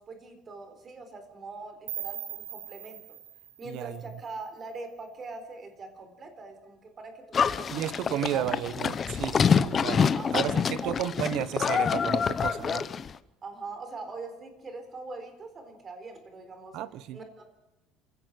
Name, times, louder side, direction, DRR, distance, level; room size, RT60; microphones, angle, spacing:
voice 1, 0.0-3.0 3.6-8.5 9.3-9.6 10.0-10.9 13.4-16.8 17.1-17.5, right 3 dB, 25° right, 3.9 m, -42 dB
sound 1, 1.9-4.8, right 11 dB, 80° right, 2.7 m, -41 dB
voice 2, 3.7-4.0 7.7-12.9 16.7-17.2, right 12 dB, 60° right, 1.0 m, -33 dB
Livestock farm animals working animals, 7.3-13.1, left 6 dB, 25° left, 0.7 m, -26 dB
28.0 x 16.0 x 6.4 m
cardioid pair, 160°, 0 cm